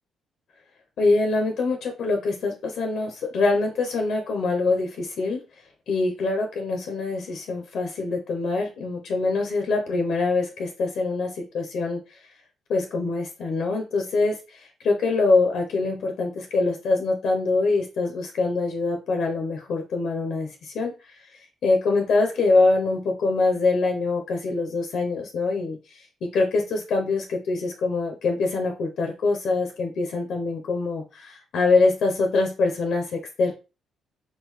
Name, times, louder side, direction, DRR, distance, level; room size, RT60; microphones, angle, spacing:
voice 1, 1.0-5.4 5.9-12.0 12.7-21.2 21.6-33.5, left 3 dB, 70° left, 3 dB, 0.6 m, -24 dB
3.8 x 2.2 x 3.1 m, 0.30 s
cardioid pair, 90°, 0 cm